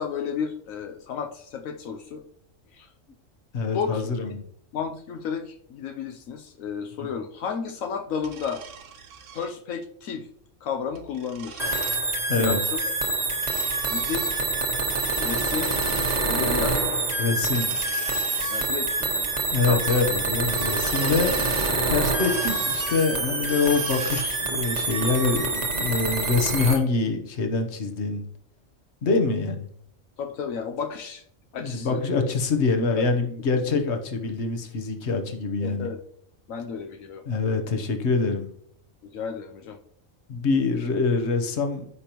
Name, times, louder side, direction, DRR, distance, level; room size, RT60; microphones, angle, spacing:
voice 1, 0.0-2.2 2.7-2.9 3.7-4.3 4.7-8.6 9.3-10.3 10.6-11.7 12.4-12.8 13.9-14.4 15.2-15.8 16.3-16.9 18.5-19.3 19.6-19.8 21.0-21.4 30.2-31.2 31.5-32.0 32.9-33.0 35.6-36.0 36.5-37.2 39.0-39.8, left 6 dB, 85° left, 4 dB, 1.1 m, -32 dB
voice 2, 3.5-4.4 12.3-12.6 17.2-17.7 19.5-21.3 21.7-28.2 29.0-29.7 31.5-35.9 37.3-38.5 40.3-41.9, left 4 dB, 60° left, 5 dB, 1.3 m, -25 dB
sound 1, 8.2-9.5 10.7-12.1 13.0-14.6 14.9-16.3 17.4-19.1 19.4-19.5 19.8-20.1 20.4-21.8 22.2-24.4 24.8-25.7, right 6 dB, 70° right, 1.1 m, -41 dB
sound 2, 11.6-26.8, right 3 dB, 35° right, 1.1 m, -26 dB
14.0 x 5.2 x 3.0 m, 0.65 s
omnidirectional pair, 1.4 m